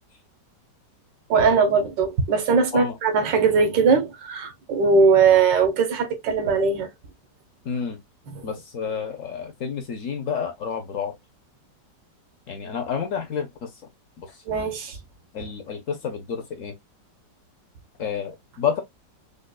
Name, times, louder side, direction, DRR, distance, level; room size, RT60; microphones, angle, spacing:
voice 1, 1.3-6.9 8.3-8.4 14.5-15.0, right 5 dB, 80° right, 1.6 m, -20 dB
voice 2, 7.6-8.0 8.4-11.2 12.5-13.7 14.2-14.3 15.3-16.7 18.0-18.8, left 7 dB, 60° left, 0.9 m, -29 dB
5.1 x 2.3 x 2.2 m
omnidirectional pair, 1.9 m